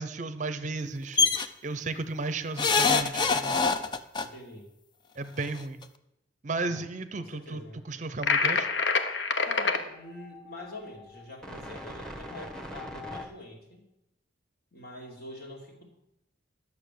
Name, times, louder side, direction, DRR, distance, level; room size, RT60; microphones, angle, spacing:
voice 1, 0.0-3.6 5.2-5.8 6.4-8.7, right 3 dB, 40° right, 11 dB, 0.6 m, -34 dB
sound 1, 1.2-1.5 2.6-4.3 5.4-5.5 5.8-5.9, left 4 dB, 25° left, 0.5 m, -24 dB
voice 2, 4.2-4.7 6.6-6.8 7.2-7.8 9.4-13.9 14.7-15.9, left 2 dB, 55° left, -1 dB, 2.7 m, -44 dB
sound 2, 8.2-9.8, left 4 dB, 70° left, 0.9 m, -26 dB
sound 3, 9.6-13.3, left 1 dB, 5° left, 1.2 m, -42 dB
11.5 x 6.9 x 6.8 m, 0.86 s
head